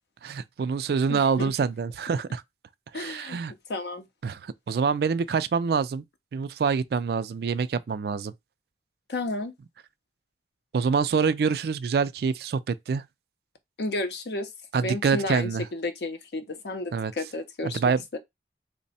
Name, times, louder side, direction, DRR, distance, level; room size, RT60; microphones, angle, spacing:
voice 1, 0.2-2.4 2.9-3.5 4.2-6.0 6.3-8.3 10.7-13.0 14.7-15.7 16.9-17.1 17.6-18.2, right 5 dB, 60° right, 0.3 m, -26 dB
voice 2, 1.1-1.5 2.9-3.4 3.7-4.1 9.1-9.5 13.8-14.5 14.8-18.2, left 2 dB, 65° left, 0.7 m, -32 dB
3.4 x 2.1 x 4.1 m
head